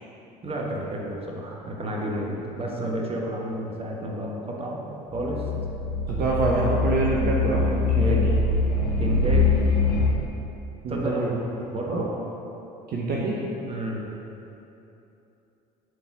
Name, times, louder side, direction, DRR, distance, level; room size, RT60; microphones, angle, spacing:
voice 1, 0.4-4.8 5.1-5.4 8.0-8.3 9.0-9.5 10.9-11.2 11.7-12.0 13.7-14.0, right 1 dB, 25° right, -1 dB, 1.3 m, -31 dB
sound 1, 5.1-10.1, left 3 dB, 90° left, 0.7 m, -23 dB
voice 2, 6.1-8.2 10.8-11.3 11.7-12.1 12.9-13.4, right 2 dB, 45° right, -4 dB, 1.0 m, -26 dB
7.6 x 4.2 x 4.8 m, 2.9 s
hypercardioid pair, 65°, 21 cm